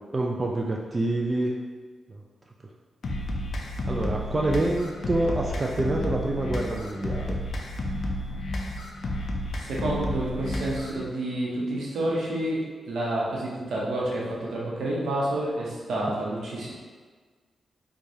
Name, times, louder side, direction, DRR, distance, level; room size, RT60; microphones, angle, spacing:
voice 1, 0.1-1.6 2.1-2.2 3.9-7.3, right 2 dB, 30° right, -1 dB, 0.3 m, -27 dB
sound 1, 3.0-11.0, left 1 dB, 60° left, 0.4 m, -31 dB
voice 2, 9.6-16.7, right 1 dB, 80° right, -5 dB, 0.9 m, -29 dB
4.7 x 2.3 x 2.7 m, 1.5 s
cardioid pair, 95°, 0 cm